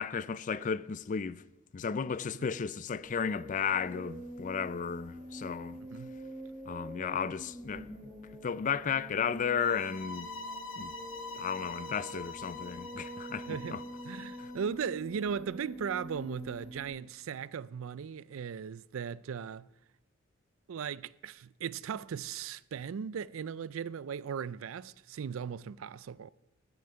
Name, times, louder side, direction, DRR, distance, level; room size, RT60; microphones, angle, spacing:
voice 1, 0.0-1.4 1.7-5.8 6.7-7.9 8.4-10.3 10.8-10.9 11.3-13.8 14.4-14.5, left 6 dB, 40° left, 0.4 m, -34 dB
sound 1, 3.0-16.9, equal, 10° right, 5.4 m, -46 dB
sound 2, 9.6-14.6, left 2 dB, 65° left, 1.3 m, -44 dB
voice 2, 13.5-13.8 14.0-19.7 20.7-26.3, right 7 dB, 75° right, 0.4 m, -37 dB
14.5 x 7.9 x 5.7 m
head